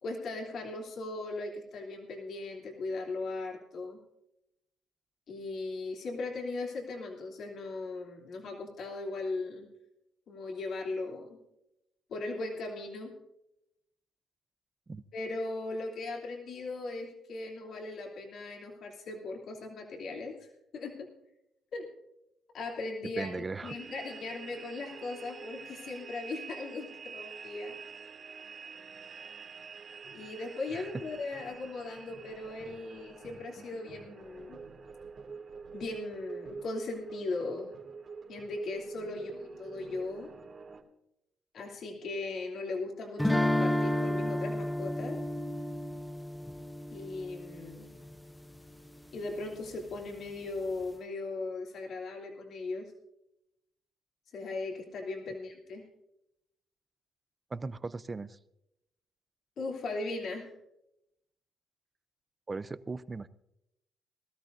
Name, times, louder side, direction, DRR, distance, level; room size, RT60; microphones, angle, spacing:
voice 1, 0.0-4.0 5.3-9.7 10.3-11.4 12.1-13.1 15.1-21.1 21.7-21.8 22.5-23.4 23.6-27.8 30.1-34.6 35.7-37.7 38.3-40.3 41.5-45.2 46.9-47.9 49.1-52.9 54.3-55.8 59.6-60.5, left 3 dB, 65° left, 0 dB, 3.0 m, -38 dB
voice 2, 23.1-23.8 30.7-30.9 57.5-58.4 62.5-63.3, right 3 dB, 25° right, 16 dB, 0.6 m, -38 dB
sound 1, 23.6-40.8, right 5 dB, 50° right, 2.2 m, -46 dB
sound 2, 43.2-48.1, left 1 dB, 5° left, 0.7 m, -31 dB
21.0 x 13.0 x 2.7 m, 0.84 s
cardioid pair, 90°, 0 cm